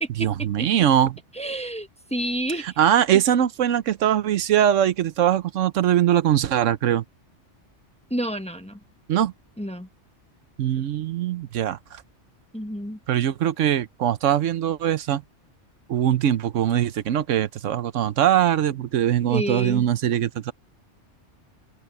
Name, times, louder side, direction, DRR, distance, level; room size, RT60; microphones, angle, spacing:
voice 1, 0.2-1.2 2.6-7.0 9.1-9.3 10.6-12.0 13.1-15.2 15.9-20.5, right 10 dB, 85° right, 1.1 m, -22 dB
voice 2, 1.4-2.7 8.1-8.8 9.6-9.9 12.5-13.0 19.3-19.8, right 1 dB, 5° left, 1.0 m, -29 dB
omnidirectional pair, 1.3 m